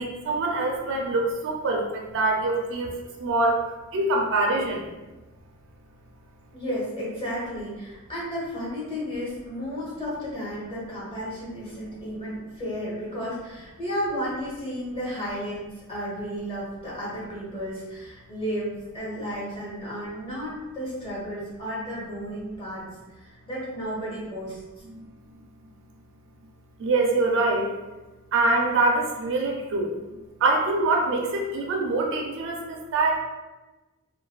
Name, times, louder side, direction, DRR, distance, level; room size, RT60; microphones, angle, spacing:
voice 1, 0.0-2.9 3.2-3.6 3.9-4.9 24.9-25.0 26.8-27.7 28.3-30.0 30.4-33.2, right 2 dB, 60° right, 0 dB, 0.4 m, -24 dB
voice 2, 6.5-22.9 23.2-24.6, equal, 25° left, -8 dB, 1.1 m, -33 dB
3.1 x 2.2 x 2.2 m, 1.1 s
head